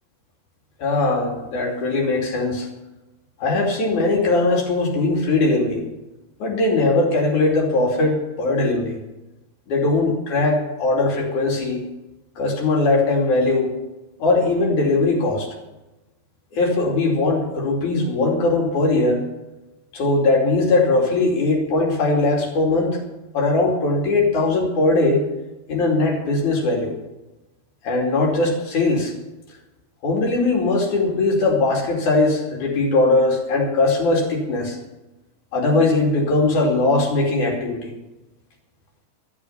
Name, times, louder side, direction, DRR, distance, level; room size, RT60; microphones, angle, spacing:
voice 1, 0.8-2.7 3.4-5.8 6.4-9.0 9.7-11.8 12.4-13.7 14.2-15.5 16.5-19.2 19.9-23.0 23.3-25.2 25.7-26.9 27.8-29.1 30.0-34.8 35.5-37.9, left 2 dB, 90° left, -1 dB, 4.3 m, -20 dB
13.0 x 12.5 x 5.7 m, 1.0 s
omnidirectional pair, 3.3 m